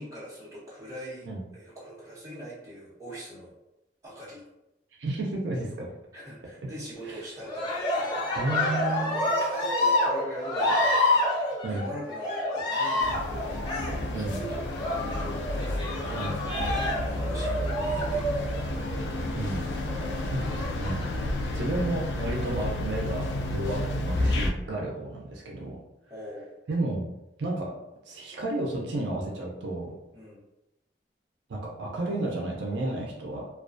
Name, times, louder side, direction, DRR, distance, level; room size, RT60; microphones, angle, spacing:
voice 1, 0.0-1.3 1.5-3.5 4.0-4.4 6.1-10.7 11.0-11.3 11.6-13.5 14.1-16.2 17.0-18.6 19.1-20.6 26.1-26.6 30.1-30.4, equal, 20° right, -9 dB, 0.9 m, -42 dB
voice 2, 5.0-5.9 7.0-7.2 8.4-9.3 11.6-11.9 14.1-14.4 16.1-16.4 19.4-19.6 20.3-20.4 20.8-21.0 21.5-25.8 26.7-27.1 27.4-27.7 28.1-30.0 31.5-33.5, right 2 dB, 75° right, -2 dB, 0.4 m, -32 dB
Cheering, 7.4-19.1 20.4-21.3 22.0-22.6, left 1 dB, 25° left, 0.8 m, -28 dB
sound 1, 13.0-24.5, left 1 dB, 75° left, 0.3 m, -31 dB
2.3 x 2.2 x 2.5 m, 0.92 s
head